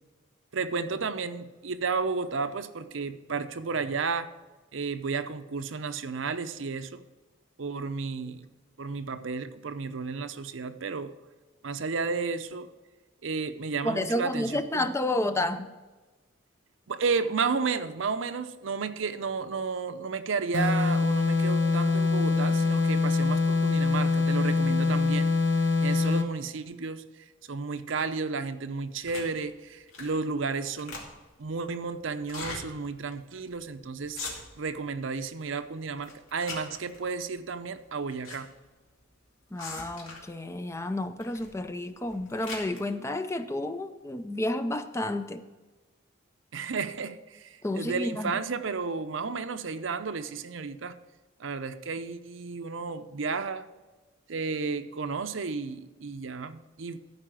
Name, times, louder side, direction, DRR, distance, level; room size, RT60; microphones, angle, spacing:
voice 1, 0.5-4.3 4.7-7.0 7.6-8.4 8.8-11.1 11.6-12.7 13.2-14.9 16.9-25.3 25.8-31.0 31.4-34.2 34.6-38.5 46.5-51.0 51.4-53.7 54.3-57.0, right 4 dB, 70° right, 10 dB, 0.6 m, -32 dB
voice 2, 13.8-15.7 39.5-45.4 47.6-48.3, left 1 dB, 15° left, 10 dB, 0.4 m, -30 dB
sound 1, 20.5-26.4, left 3 dB, 65° left, 1.0 m, -24 dB
sound 2, 29.0-29.4 29.9-30.2 30.5-31.4 32.2-32.6 33.1-33.2 33.5-33.7 34.0-34.7 35.1-35.6 36.0-37.0 37.8-38.4 38.6-38.7 39.6-40.4 41.2-41.5 42.0-42.8, left 3 dB, 90° left, 2.5 m, -40 dB
14.0 x 4.9 x 6.1 m, 1.2 s
head